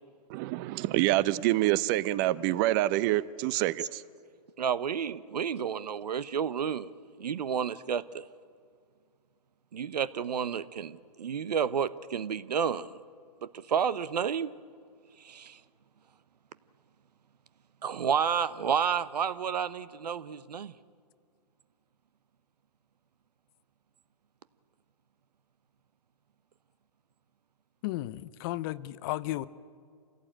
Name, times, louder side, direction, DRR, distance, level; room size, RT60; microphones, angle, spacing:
voice 1, 0.3-4.0, right 16 dB, 30° right, 18 dB, 0.6 m, -26 dB
voice 2, 4.6-6.9 7.2-8.2 9.7-12.9 13.4-14.5 15.2-15.6 17.8-20.7, right 7 dB, 80° right, 16 dB, 0.9 m, -30 dB
voice 3, 27.8-29.5, left 16 dB, 35° left, 16 dB, 0.6 m, -34 dB
27.5 x 16.5 x 8.9 m, 2.2 s
hypercardioid pair, 140°, 20 cm